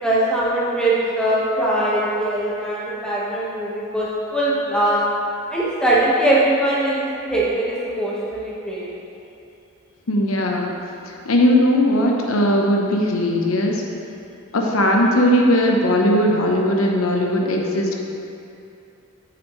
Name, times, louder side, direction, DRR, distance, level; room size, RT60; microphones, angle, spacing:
voice 1, 0.0-5.0 5.5-7.0 7.3-8.9, right 1 dB, 5° left, -7 dB, 1.3 m, -21 dB
voice 2, 10.1-10.7 11.2-13.8 14.5-17.9, left 1 dB, 90° left, 0 dB, 0.9 m, -18 dB
8.5 x 7.0 x 3.1 m, 2.7 s
head